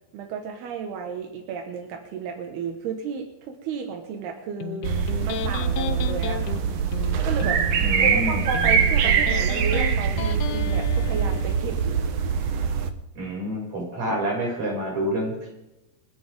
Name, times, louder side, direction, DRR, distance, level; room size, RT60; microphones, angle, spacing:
voice 1, 0.1-4.9 5.2-6.7 7.2-7.6 8.0-12.1 14.1-14.2, right 6 dB, 85° right, 3 dB, 3.5 m, -33 dB
Electric guitar, 4.6-11.6, left 12 dB, 85° left, 2.8 m, -34 dB
sound 1, 4.8-12.9, right 7 dB, 70° right, 1.6 m, -23 dB
voice 2, 7.8-8.4 13.2-15.5, equal, 45° right, -3 dB, 7.6 m, -28 dB
29.5 x 11.0 x 3.7 m, 0.93 s
omnidirectional pair, 4.4 m